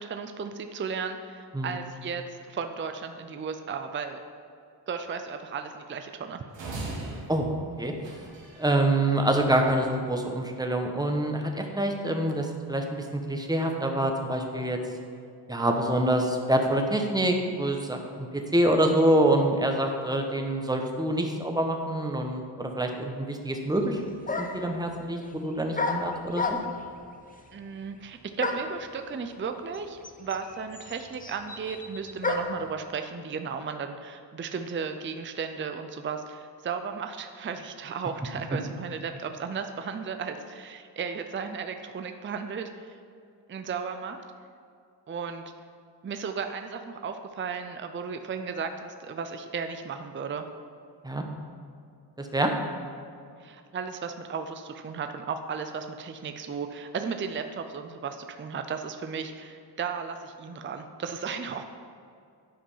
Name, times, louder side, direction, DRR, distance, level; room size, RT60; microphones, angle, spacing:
voice 1, 0.0-4.2 4.9-6.4 27.5-42.7 43.5-44.2 45.1-45.5 46.0-50.5 53.4-61.6, right 5 dB, 30° right, 7 dB, 0.5 m, -35 dB
sound 1, 6.5-8.8, right 2 dB, 80° right, 1.7 m, -38 dB
voice 2, 8.6-14.8 15.5-24.0 24.4-26.6 51.0-51.2 52.2-52.5, right 1 dB, 10° right, 3 dB, 1.0 m, -26 dB
sound 2, 23.8-23.9 24.3-24.7 25.7-26.9 28.4-28.8 29.7-29.8 30.0-32.7, left 3 dB, 20° left, 0.7 m, -31 dB
10.0 x 5.1 x 5.5 m, 2.4 s
cardioid pair, 90°, 43 cm